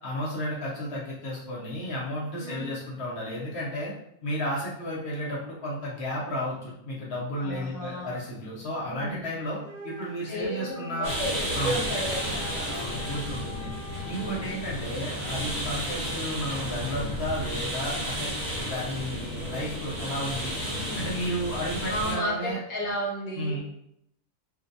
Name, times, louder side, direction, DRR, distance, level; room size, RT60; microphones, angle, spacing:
voice 1, 0.0-3.9 4.2-11.1 11.5-11.8 12.8-13.7 14.0-18.3 18.7-20.5 20.9-22.6 23.4-23.6, equal, 55° left, -4 dB, 0.9 m, -33 dB
voice 2, 7.4-8.2 8.9-9.3 10.3-13.2 14.2-14.4 19.0-19.7 20.7-21.1 21.9-23.7, right 1 dB, 30° left, -5 dB, 0.4 m, -34 dB
Wind instrument woodwind instrument, 9.6-14.8, left 1 dB, 60° right, 0.7 m, -44 dB
sound 1, 11.0-22.1, equal, 35° right, 1.0 m, -32 dB
2.5 x 2.1 x 2.6 m, 0.73 s
omnidirectional pair, 1.5 m